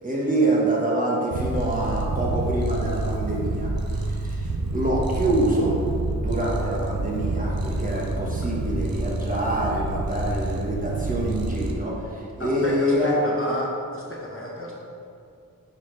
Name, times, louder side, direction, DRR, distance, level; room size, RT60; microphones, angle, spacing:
voice 1, 0.0-5.8 6.1-13.1, right 1 dB, 25° right, -5 dB, 1.4 m, -26 dB
Purr, 1.3-11.7, right 2 dB, 85° right, 0.8 m, -28 dB
voice 2, 12.4-14.7, left 1 dB, 35° left, -4 dB, 1.2 m, -32 dB
9.6 x 4.1 x 3.4 m, 2.5 s
wide cardioid pair, 80°, 35 cm